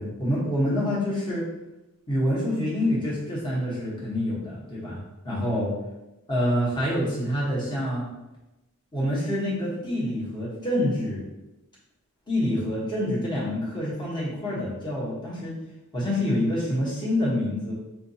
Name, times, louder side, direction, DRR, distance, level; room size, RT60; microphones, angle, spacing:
voice 1, 0.0-1.4 2.1-5.0 5.2-5.7 6.3-8.1 8.9-11.2 12.3-15.6 15.9-17.7, left 1 dB, 20° left, -7 dB, 1.0 m, -26 dB
4.7 x 2.5 x 2.7 m, 0.99 s
head